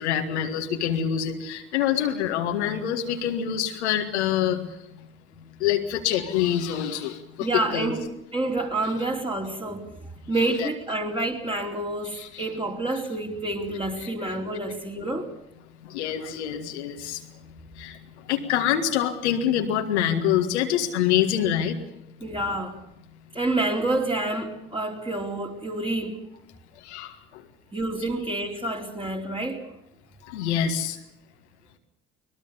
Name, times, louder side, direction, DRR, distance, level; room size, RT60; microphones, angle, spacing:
voice 1, 0.0-4.6 4.9-5.0 5.6-7.9 10.6-10.7 12.1-12.5 14.0-14.1 15.8-17.2 17.8-21.8 26.8-27.4 30.2-31.0, left 10 dB, 80° left, 1.8 m, -26 dB
voice 2, 7.4-8.1 8.3-15.3 22.2-22.8 23.3-26.2 27.7-29.7, right 2 dB, 15° right, 4.5 m, -28 dB
23.0 x 20.5 x 6.9 m
hypercardioid pair, 55°, 33 cm